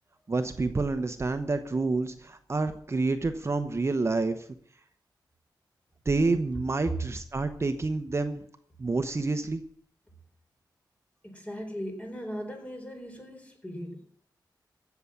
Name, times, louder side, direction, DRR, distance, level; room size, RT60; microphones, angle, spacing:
voice 1, 0.3-4.5 6.0-8.4 8.8-9.6, right 3 dB, 35° right, 8 dB, 1.0 m, -28 dB
voice 2, 11.2-14.0, equal, 20° left, 3 dB, 4.2 m, -38 dB
15.5 x 7.1 x 8.6 m, 0.62 s
wide cardioid pair, 90°, 8 cm